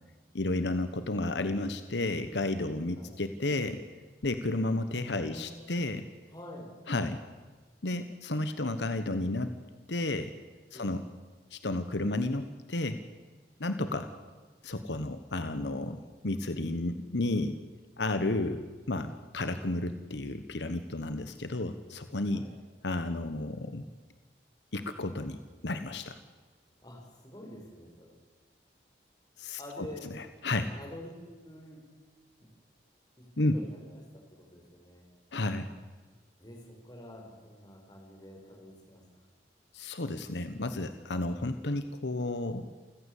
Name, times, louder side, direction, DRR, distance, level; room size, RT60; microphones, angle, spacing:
voice 1, 0.3-3.8 4.2-6.1 6.9-7.2 7.8-9.5 9.9-10.3 10.7-11.0 11.5-13.0 13.6-14.1 14.6-17.6 18.0-22.5 22.8-23.9 24.7-25.4 25.6-26.2 29.4-30.7 33.4-33.6 35.3-35.7 39.7-42.7, left 2 dB, 75° left, 10 dB, 1.2 m, -32 dB
voice 2, 5.1-5.8 6.3-6.7 10.7-11.0 14.0-14.2 22.3-22.5 26.8-28.1 29.6-30.0 30.7-31.2 31.4-31.8 32.4-32.5 33.4-34.0 34.3-35.1 36.4-39.0, left 1 dB, 25° left, 0 dB, 6.0 m, -47 dB
28.5 x 15.0 x 8.4 m, 1.4 s
head